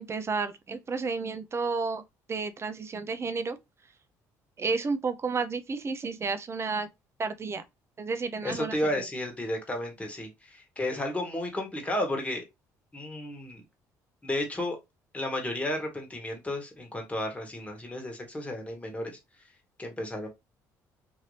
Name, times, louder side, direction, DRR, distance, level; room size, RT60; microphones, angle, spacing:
voice 1, 0.0-2.0 2.3-3.6 4.6-6.9 7.2-7.6 8.0-9.1, right 4 dB, 35° right, 0.5 m, -31 dB
voice 2, 8.4-12.4 12.9-13.6 14.2-14.8 15.1-19.2 19.8-20.3, left 1 dB, 15° left, 1.4 m, -32 dB
2.8 x 2.7 x 3.2 m
supercardioid pair, 70°, 8 cm